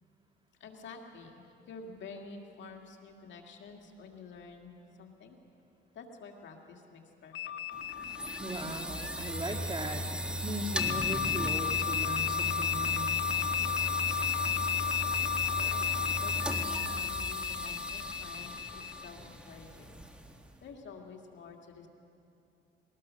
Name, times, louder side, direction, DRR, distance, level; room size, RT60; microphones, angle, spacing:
voice 1, 0.6-5.4 5.9-7.5 15.5-15.9 16.2-20.0 20.6-21.9, left 4 dB, 70° left, 2 dB, 2.2 m, -49 dB
sound 1, 7.3-9.9 10.8-19.1, left 10 dB, 85° left, 0.9 m, -33 dB
sound 2, 7.7-20.5, equal, 5° right, 1.8 m, -37 dB
voice 2, 8.4-10.0 10.4-13.1, right 2 dB, 25° right, 4 dB, 2.0 m, -38 dB
21.0 x 19.0 x 6.5 m, 2.7 s
cardioid pair, 90°, 20 cm